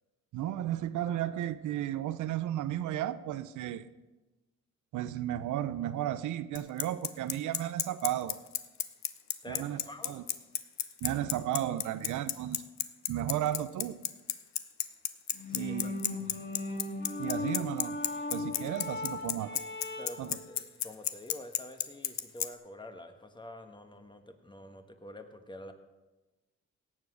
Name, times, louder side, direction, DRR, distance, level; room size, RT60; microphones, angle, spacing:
voice 1, 0.3-3.9 4.9-8.4 9.5-9.8 10.0-10.2 11.0-12.6 13.1-14.0 15.5-16.0 17.2-18.0 18.3-19.6 20.2-20.4, right 12 dB, 80° right, 13 dB, 0.7 m, -34 dB
Bicycle, 6.6-22.5, left 11 dB, 65° left, 0.8 m, -31 dB
voice 2, 9.4-10.2 15.5-15.9 17.4-17.5 20.0-25.7, left 1 dB, 15° left, 7 dB, 1.5 m, -47 dB
sound 1, 15.3-20.4, left 2 dB, 35° left, 2.7 m, -38 dB
17.0 x 7.5 x 6.3 m, 1.1 s
cardioid pair, 90°, 30 cm